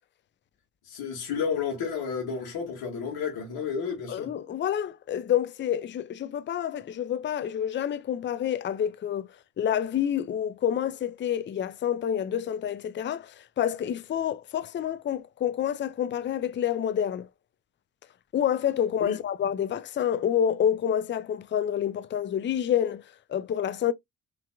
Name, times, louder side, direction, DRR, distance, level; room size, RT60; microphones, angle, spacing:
voice 1, 0.8-4.3 19.0-19.2, left 6 dB, 55° left, 1.9 m, -31 dB
voice 2, 4.1-9.3 9.6-17.3 18.3-23.0 23.3-23.9, left 9 dB, 25° left, 0.5 m, -28 dB
5.7 x 3.3 x 2.3 m
figure-of-eight pair, 45°, 44 cm